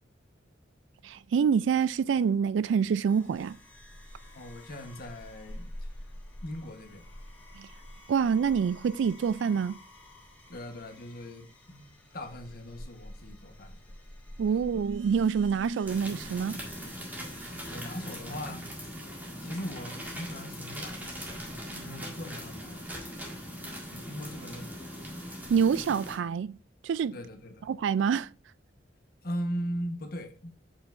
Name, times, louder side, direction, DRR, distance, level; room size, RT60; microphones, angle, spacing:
voice 1, 1.0-3.6 7.6-7.7 8.1-9.8 14.4-16.6 25.5-26.6 26.8-27.2 27.7-28.3, right 6 dB, 75° right, 0.3 m, -26 dB
sound 1, 3.1-18.2, left 1 dB, 10° left, 1.7 m, -48 dB
voice 2, 4.3-6.1 6.4-7.1 10.5-14.0 17.7-18.9 19.4-21.4 21.8-23.3 23.9-24.8 27.1-27.7 29.2-30.5, equal, 55° left, 1.1 m, -40 dB
sound 2, 15.9-26.2, equal, 10° right, 1.8 m, -40 dB
7.0 x 5.6 x 2.5 m
head